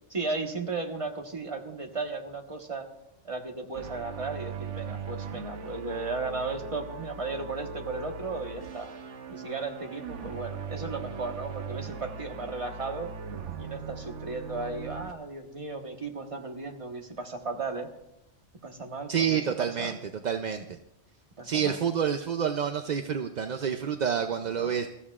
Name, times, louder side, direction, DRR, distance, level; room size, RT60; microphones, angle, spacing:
voice 1, 0.1-2.9 3.2-8.9 9.3-13.1 13.6-17.9 18.6-19.9 21.4-21.8 24.6-24.7, right 3 dB, 30° right, 2 dB, 1.4 m, -35 dB
sound 1, 3.7-15.1, right 6 dB, 80° right, 1.2 m, -39 dB
voice 2, 19.1-20.0 20.2-20.8 21.4-24.9, right 7 dB, 45° right, 6 dB, 0.6 m, -28 dB
26.5 x 14.0 x 2.4 m, 0.89 s
omnidirectional pair, 1.2 m